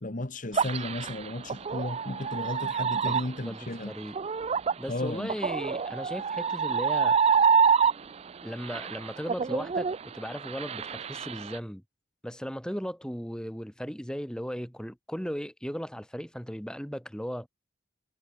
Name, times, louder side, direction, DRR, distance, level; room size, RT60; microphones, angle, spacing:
voice 1, 0.0-3.9 4.9-5.3, left 1 dB, 45° left, 1.6 m, -34 dB
sound 1, 0.5-8.3 8.6-11.6, right 6 dB, 35° right, 0.4 m, -27 dB
voice 2, 3.0-4.2 4.8-7.2 8.4-11.8 12.2-17.5, equal, 5° left, 5.1 m, -37 dB
head